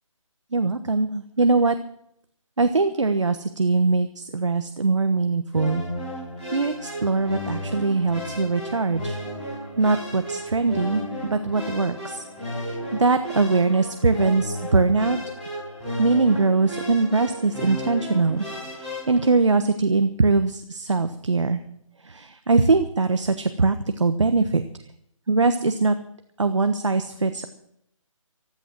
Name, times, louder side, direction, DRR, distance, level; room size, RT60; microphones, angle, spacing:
voice 1, 0.5-1.8 2.6-5.8 6.5-9.2 9.8-12.2 12.7-15.2 16.0-21.6 22.1-24.6 25.3-26.0 26.4-27.5, right 3 dB, 60° right, 9 dB, 1.2 m, -22 dB
sound 1, 5.5-19.2, equal, 5° left, 5.1 m, -34 dB
15.0 x 13.5 x 6.2 m, 0.71 s
hypercardioid pair, 180°, 17 cm